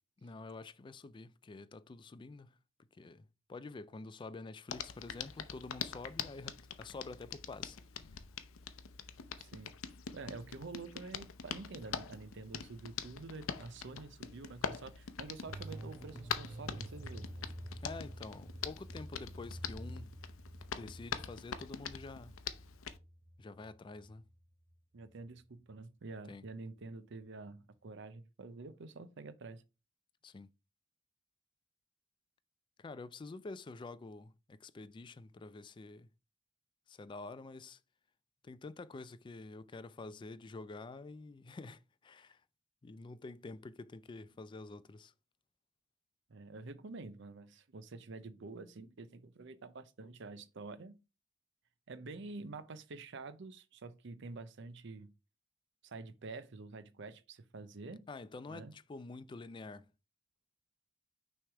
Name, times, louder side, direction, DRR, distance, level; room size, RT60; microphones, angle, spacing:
voice 1, 0.2-2.6 2.9-7.8 8.1-8.2 17.8-20.1 20.7-22.4 23.4-24.2 26.3-26.4 30.2-30.5 32.8-36.1 36.9-37.8 38.4-42.4 42.8-45.1 58.1-59.9, left 3 dB, 25° left, 0.3 m, -48 dB
Hands, 4.7-23.0, left 7 dB, 85° left, 0.6 m, -44 dB
voice 2, 9.4-9.8 10.1-17.3 24.9-29.6 46.3-51.0 51.9-55.1 55.8-58.1 58.5-58.7, right 3 dB, 60° right, 0.6 m, -48 dB
sound 1, 15.5-25.4 25.6-25.7, right 1 dB, 10° right, 0.8 m, -49 dB
6.1 x 3.3 x 4.7 m
head